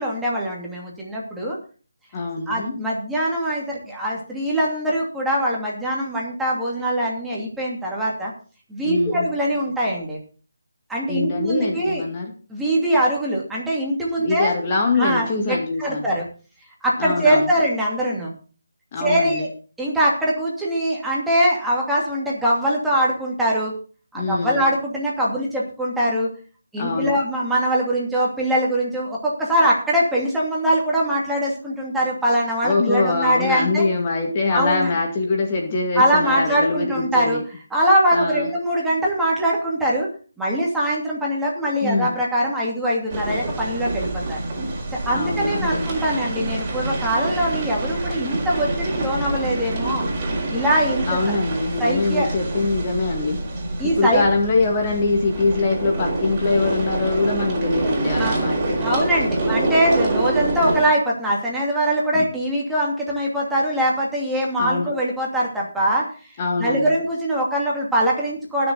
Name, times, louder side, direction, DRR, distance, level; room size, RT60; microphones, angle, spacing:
voice 1, 0.0-1.6 2.5-8.3 8.7-10.2 10.9-12.0 12.5-14.5 15.0-16.2 16.8-18.3 19.0-19.5 19.8-23.7 24.1-26.3 26.7-33.8 34.5-34.9 36.0-37.4 37.7-40.1 40.4-44.4 44.9-50.1 50.5-51.4 51.8-52.3 53.8-54.2 58.2-58.4 58.8-66.2 66.6-68.7, right 1 dB, 5° right, -5 dB, 2.7 m, -22 dB
voice 2, 2.1-2.8 8.8-9.3 11.1-12.3 14.2-16.1 17.0-17.5 18.9-19.5 24.1-24.7 26.8-27.2 32.6-37.4 38.1-38.5 41.8-42.2 45.1-45.9 51.1-53.4 53.8-59.0 62.1-62.2 64.6-64.9 66.4-67.0, left 3 dB, 25° left, 1 dB, 2.1 m, -23 dB
sound 1, 43.1-60.8, right 2 dB, 25° right, 4.5 m, -26 dB
20.5 x 6.9 x 4.0 m, 0.38 s
figure-of-eight pair, 165°, 0 cm